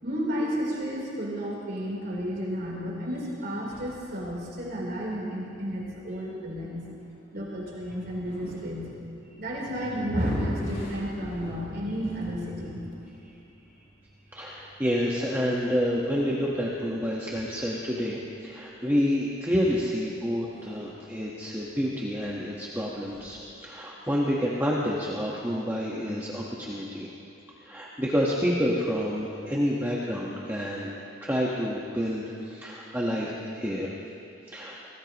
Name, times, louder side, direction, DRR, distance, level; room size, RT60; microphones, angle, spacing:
voice 1, 0.0-6.9 7.3-8.9 9.4-12.9, equal, 55° right, -4 dB, 3.7 m, -32 dB
sound 1, 3.7-23.4, equal, 45° left, 4.8 m, -49 dB
voice 2, 14.3-23.4 23.6-27.1 27.6-30.9 31.2-33.9 34.5-34.7, equal, 10° right, -4 dB, 1.3 m, -28 dB
25.5 x 19.0 x 3.0 m, 2.8 s
head